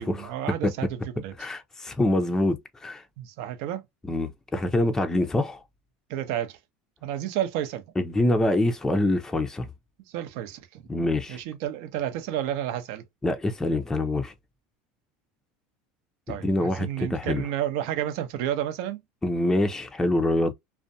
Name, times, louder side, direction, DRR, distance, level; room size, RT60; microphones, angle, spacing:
voice 1, 0.0-1.3 3.2-3.8 6.1-6.6 7.0-7.8 10.1-10.8 11.3-13.0 16.3-19.0, right 11 dB, 70° right, 0.7 m, -31 dB
voice 2, 1.4-3.0 4.1-5.6 8.0-9.7 10.9-11.4 13.2-14.3 16.3-17.4 19.2-20.5, left 1 dB, 10° left, 0.5 m, -25 dB
2.5 x 2.1 x 2.6 m
supercardioid pair, 110°, 5 cm